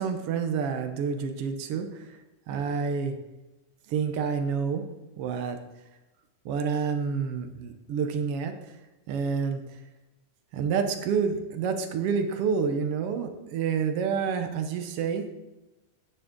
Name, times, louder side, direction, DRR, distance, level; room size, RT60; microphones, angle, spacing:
voice 1, 0.0-2.2 2.5-3.2 3.9-4.8 5.2-5.6 6.4-8.8 9.1-9.8 10.5-15.3, right 6 dB, 70° right, 7 dB, 1.4 m, -28 dB
9.7 x 9.4 x 3.7 m, 1.0 s
omnidirectional pair, 3.7 m